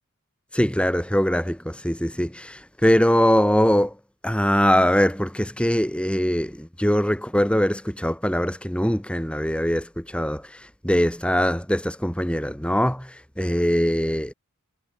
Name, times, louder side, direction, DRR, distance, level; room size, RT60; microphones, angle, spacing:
voice 1, 0.5-4.0 4.2-14.3, equal, 5° left, 6.0 m, -22 dB
head